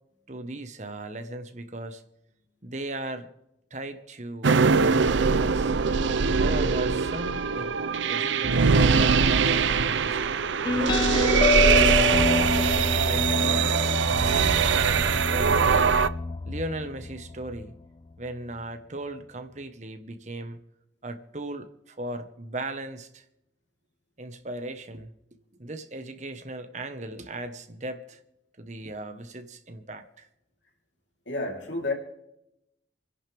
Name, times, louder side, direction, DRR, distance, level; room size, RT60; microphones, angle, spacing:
voice 1, 0.3-2.0 2.6-3.3 3.7-5.8 6.3-7.7 8.1-13.8 14.7-15.8 16.5-17.8 18.2-20.6 21.0-23.2 24.2-25.1 25.6-28.2 28.6-30.3, right 2 dB, 40° right, 1.3 m, -37 dB
sound 1, 4.4-16.1, right 5 dB, 85° right, 0.6 m, -22 dB
sound 2, 10.6-17.8, left 4 dB, 25° left, 0.5 m, -27 dB
voice 2, 31.3-31.9, left 2 dB, 85° left, 3.6 m, -30 dB
28.5 x 11.0 x 3.5 m
head